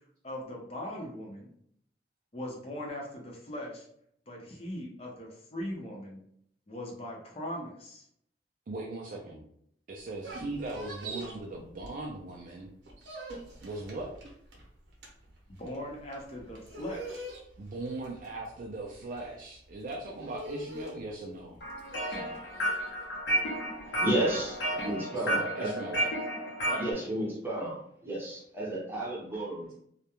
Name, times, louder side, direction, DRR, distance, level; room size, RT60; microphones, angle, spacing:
voice 1, 0.2-1.5 2.3-3.9 4.3-6.2 6.7-8.1 15.5-17.3, left 1 dB, 35° left, -1 dB, 0.6 m, -40 dB
voice 2, 8.7-9.4 9.9-12.7 13.6-14.1 17.6-21.6 22.1-22.3 25.1-26.1 26.7-26.9, right 2 dB, 50° right, -1 dB, 0.3 m, -39 dB
sound 1, 10.0-12.3 12.6-25.0, right 1 dB, 90° right, 0.7 m, -45 dB
sound 2, 21.6-26.9, equal, 90° left, 0.7 m, -32 dB
voice 3, 23.8-25.8 26.8-29.7, right 1 dB, 15° right, -5 dB, 0.8 m, -32 dB
2.3 x 2.1 x 2.9 m, 0.69 s
head